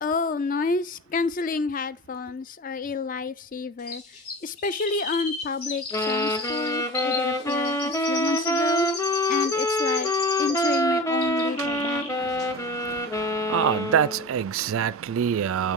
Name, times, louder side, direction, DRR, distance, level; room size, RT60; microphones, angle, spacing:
voice 1, 0.0-4.0 4.4-8.9 9.3-10.1 10.4-12.3, left 4 dB, 40° left, 0.4 m, -29 dB
Chirp tweet, 3.9-10.9 11.2-12.1 12.4-12.5, left 3 dB, 90° left, 2.8 m, -34 dB
sound 1, 5.9-14.3, left 1 dB, 15° left, 1.0 m, -26 dB
voice 2, 11.5-15.7, right 8 dB, 70° right, 0.3 m, -27 dB
7.3 x 6.1 x 3.6 m
head